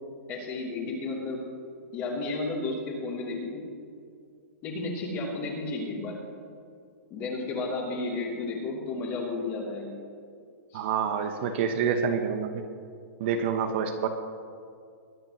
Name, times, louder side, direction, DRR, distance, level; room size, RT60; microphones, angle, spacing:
voice 1, 0.3-1.4 1.9-3.7 4.6-6.2 7.1-9.9 10.7-10.8, left 3 dB, 25° left, -2 dB, 2.8 m, -32 dB
voice 2, 10.7-12.6 13.2-14.1, right 7 dB, 45° right, 6 dB, 0.9 m, -27 dB
21.5 x 10.5 x 3.0 m, 2.3 s
hypercardioid pair, 160°, 8 cm